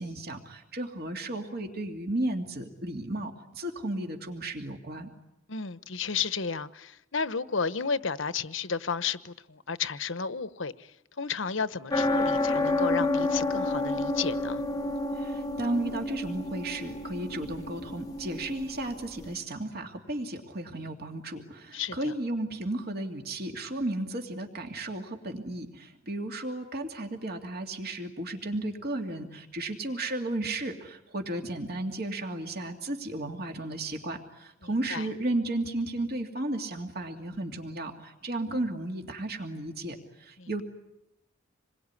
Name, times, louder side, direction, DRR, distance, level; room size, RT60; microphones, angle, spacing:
voice 1, 0.0-5.1 15.2-40.6, right 1 dB, 50° right, 2.7 m, -34 dB
voice 2, 5.5-10.9 11.2-14.6 21.7-22.1 34.9-35.1 40.4-40.5, left 5 dB, 70° left, 1.1 m, -32 dB
sound 1, 11.9-19.4, left 2 dB, 20° left, 1.0 m, -30 dB
27.5 x 22.0 x 9.8 m
head